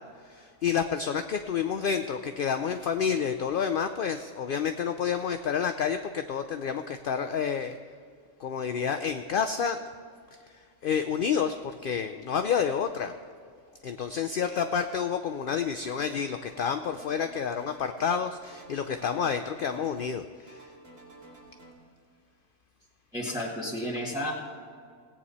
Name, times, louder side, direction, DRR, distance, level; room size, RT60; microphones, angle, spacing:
voice 1, 0.2-7.8 8.4-9.8 10.5-10.6 10.8-13.1 13.8-20.7, left 7 dB, 60° left, 8 dB, 0.6 m, -29 dB
sound 1, 15.8-16.2 16.5-18.2 18.5-20.2 20.5-21.7, right 2 dB, 75° right, 2.8 m, -51 dB
voice 2, 23.1-24.3, left 1 dB, 5° right, -7 dB, 1.9 m, -32 dB
18.0 x 8.7 x 4.2 m, 2.1 s
omnidirectional pair, 1.3 m